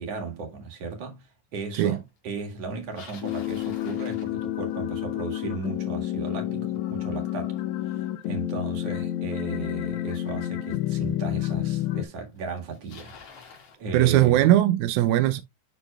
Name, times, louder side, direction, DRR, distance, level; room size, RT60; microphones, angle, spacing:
voice 1, 0.0-14.5, right 4 dB, 50° right, 2.6 m, -36 dB
Bicycle, 2.6-5.0 10.0-10.1 10.9-11.0 12.1-12.2 12.4-13.8, left 5 dB, 55° left, 3.1 m, -48 dB
sound 1, 3.2-12.0, left 13 dB, 75° left, 1.8 m, -29 dB
voice 2, 13.9-15.4, right 14 dB, 85° right, 1.7 m, -19 dB
11.5 x 4.0 x 2.3 m
omnidirectional pair, 4.0 m